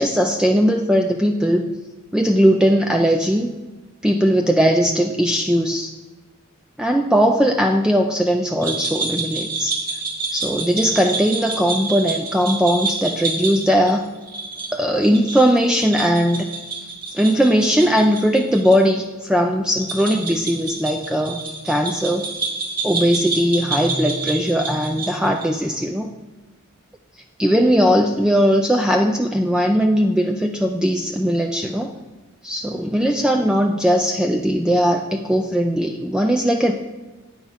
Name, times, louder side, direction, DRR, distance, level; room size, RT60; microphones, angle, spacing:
voice 1, 0.0-1.7 2.1-3.5 4.0-5.9 6.8-9.8 10.3-14.1 14.7-16.5 17.1-22.3 22.8-26.1 27.4-31.9 32.4-36.7, equal, 5° right, 3 dB, 0.3 m, -19 dB
sound 1, 8.6-18.8 19.0-19.1 19.8-25.5, right 3 dB, 40° right, 2.0 m, -28 dB
9.1 x 4.7 x 5.5 m, 1.2 s
head